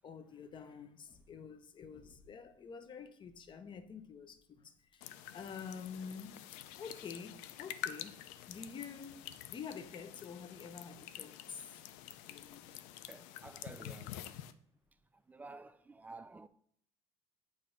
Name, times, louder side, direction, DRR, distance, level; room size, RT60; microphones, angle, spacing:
voice 1, 0.0-5.0 5.3-6.5 6.8-11.7 12.3-12.7, left 6 dB, 40° left, 0.7 m, -48 dB
sound 1, 5.0-14.5, left 12 dB, 80° left, 0.4 m, -48 dB
voice 2, 13.1-14.2 15.3-16.5, right 3 dB, 15° right, 0.4 m, -51 dB
7.6 x 2.7 x 5.0 m
supercardioid pair, 85°, 12 cm